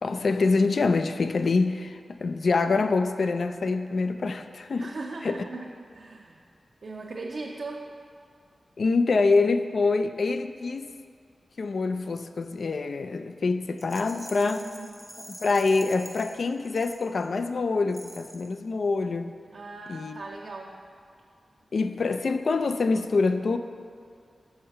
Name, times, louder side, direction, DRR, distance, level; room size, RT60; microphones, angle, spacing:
voice 1, 0.0-4.9 5.2-5.4 8.8-10.9 11.6-14.6 15.3-19.3 19.9-20.2 21.7-23.6, left 3 dB, 70° left, 8 dB, 0.3 m, -25 dB
voice 2, 4.8-6.4 6.8-7.9 14.6-14.9 19.5-20.8, right 3 dB, 70° right, -1 dB, 0.5 m, -38 dB
Rattle, 13.8-17.4 17.9-18.6, equal, 5° left, 0.6 m, -46 dB
5.5 x 5.4 x 5.7 m, 2.3 s
wide cardioid pair, 80°, 0 cm